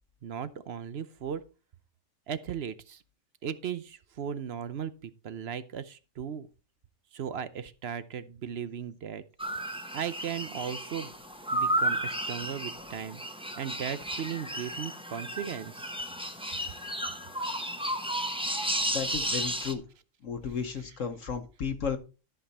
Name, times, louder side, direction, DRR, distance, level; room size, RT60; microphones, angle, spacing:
voice 1, 0.2-1.4 2.3-3.0 3.4-6.5 7.1-9.2 9.9-11.1 11.5-13.2 13.6-15.9, right 8 dB, 55° right, 14 dB, 0.8 m, -37 dB
sound 1, 9.4-19.7, right 1 dB, 5° right, 0.9 m, -33 dB
voice 2, 18.6-19.8 20.2-22.0, left 6 dB, 65° left, 7 dB, 1.3 m, -34 dB
13.0 x 5.6 x 4.2 m, 0.33 s
omnidirectional pair, 1.4 m